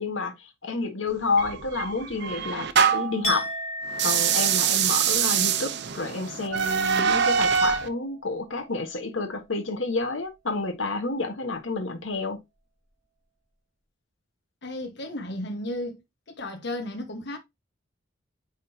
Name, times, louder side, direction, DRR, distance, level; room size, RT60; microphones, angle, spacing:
voice 1, 0.0-3.5 4.0-12.4, left 3 dB, 75° left, 1.5 m, -29 dB
sound 1, 1.4-3.2 3.9-7.9, right 7 dB, 60° right, 0.8 m, -24 dB
Chink clink, 3.2-9.2 9.5-9.9, equal, 35° left, 2.6 m, -38 dB
voice 2, 14.6-16.0 16.3-17.4, left 1 dB, 60° left, 1.4 m, -34 dB
9.3 x 3.8 x 2.8 m
head